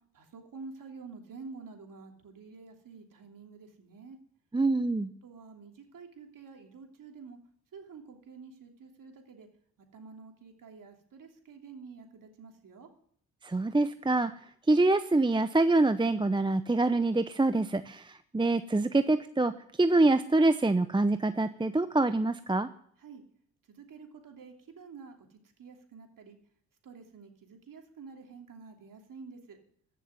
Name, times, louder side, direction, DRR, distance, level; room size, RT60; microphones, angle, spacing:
voice 1, 0.1-4.2 5.2-7.4 7.7-9.5 9.9-12.9 23.0-23.2 23.7-26.4 26.8-29.6, right 4 dB, 60° right, 3 dB, 3.1 m, -49 dB
voice 2, 4.5-5.1 13.4-14.3 14.7-19.5 19.8-22.7, right 2 dB, 15° right, 11 dB, 0.8 m, -25 dB
15.0 x 6.9 x 9.6 m, 0.63 s
supercardioid pair, 50°, 36 cm